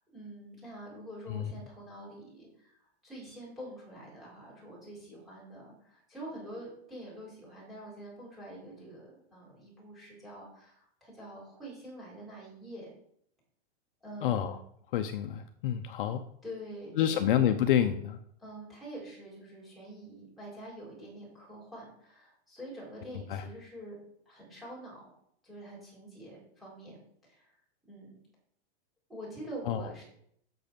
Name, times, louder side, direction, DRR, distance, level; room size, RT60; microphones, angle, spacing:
voice 1, 0.0-2.7 3.0-12.9 14.0-14.5 16.4-17.2 18.4-24.0 24.3-25.1 25.4-27.0 27.3-27.5 27.9-28.2 29.1-30.0, right 1 dB, ahead, -7 dB, 4.1 m, -46 dB
voice 2, 14.2-14.6 14.9-16.2 17.0-18.2 23.3-23.4 29.6-29.9, left 10 dB, 50° left, 7 dB, 0.7 m, -28 dB
7.9 x 6.8 x 5.2 m, 0.68 s
supercardioid pair, 165°, 33 cm